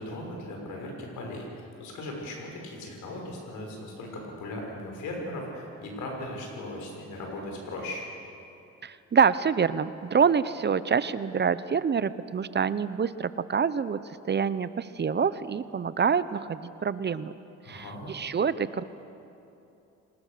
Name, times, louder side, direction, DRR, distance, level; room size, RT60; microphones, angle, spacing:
voice 1, 0.0-1.5 1.8-8.0 17.6-18.2, left 1 dB, 80° left, 0 dB, 6.4 m, -38 dB
voice 2, 8.8-14.0 14.2-17.3 17.7-18.8, right 6 dB, 35° right, 15 dB, 0.8 m, -26 dB
28.0 x 20.0 x 6.8 m, 2.8 s
cardioid pair, 90°, 30 cm